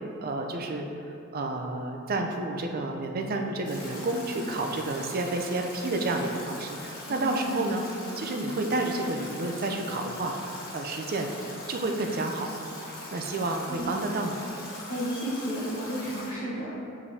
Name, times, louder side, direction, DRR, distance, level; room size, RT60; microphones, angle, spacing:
voice 1, 0.2-0.9 1.3-7.8 8.2-10.4 10.7-11.3 11.7-12.5 13.1-14.4, right 2 dB, 45° right, 3 dB, 0.5 m, -30 dB
Stream / Drip / Trickle dribble, 3.6-16.3, left 2 dB, 45° left, 1.1 m, -42 dB
voice 2, 7.0-7.6 13.7-13.9 14.9-16.8, equal, 65° left, -11 dB, 1.2 m, -33 dB
7.2 x 4.9 x 2.7 m, 2.6 s
head